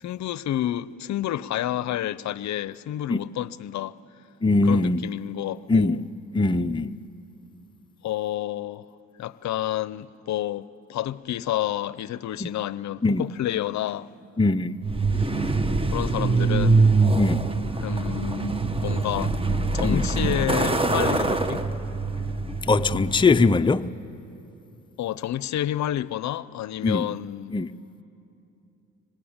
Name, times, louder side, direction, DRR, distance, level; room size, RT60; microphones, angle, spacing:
voice 1, 0.0-4.0 4.6-6.0 8.0-8.9 9.2-14.1 15.9-16.9 17.8-19.4 19.7-21.7 25.0-27.5, left 12 dB, 60° left, 0.6 m, -29 dB
voice 2, 4.4-5.0 5.7-6.0 6.3-7.0 12.4-12.5 13.0-13.2 14.4-14.7 17.2-17.4 19.8-20.0 22.6-23.9 26.8-27.1 27.5-27.7, left 3 dB, 15° left, 0.6 m, -21 dB
Truck, 14.8-23.6, right 3 dB, 15° right, 1.3 m, -24 dB
26.5 x 25.0 x 8.8 m
cardioid pair, 80°, 32 cm